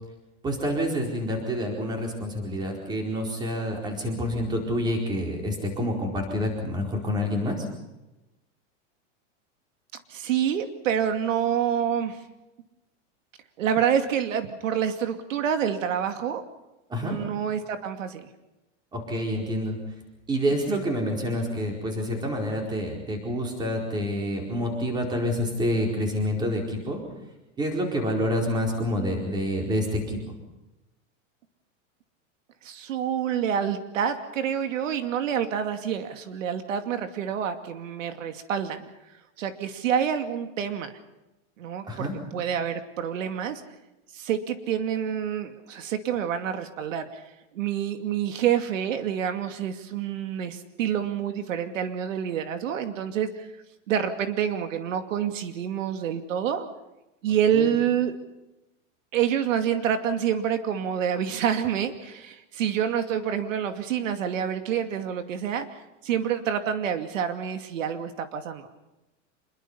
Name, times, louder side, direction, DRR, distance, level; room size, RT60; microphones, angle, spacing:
voice 1, 0.4-7.7 16.9-17.2 18.9-19.8 20.3-27.0 27.6-30.3 41.9-42.1 57.5-57.7, equal, 10° right, 1 dB, 4.6 m, -28 dB
voice 2, 10.1-12.2 13.6-16.4 17.0-18.3 20.7-20.8 32.6-38.8 39.4-40.9 41.6-42.1 42.3-43.6 44.1-47.2 47.5-53.5 53.9-56.7 57.2-58.1 59.1-65.7 66.0-68.7, right 8 dB, 85° right, 7 dB, 2.5 m, -27 dB
26.5 x 22.0 x 5.7 m, 0.99 s
supercardioid pair, 180°, 38 cm